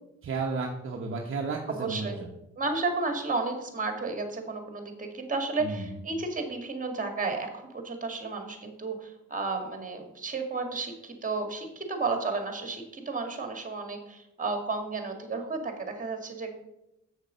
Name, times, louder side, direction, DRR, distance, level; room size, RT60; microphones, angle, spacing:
voice 1, 0.2-2.3 5.6-5.9, right 4 dB, 45° right, 1 dB, 1.0 m, -33 dB
voice 2, 1.7-2.3 2.6-16.6, right 3 dB, 25° right, 5 dB, 2.0 m, -32 dB
7.2 x 6.5 x 5.1 m, 0.87 s
cardioid pair, 90°, 30 cm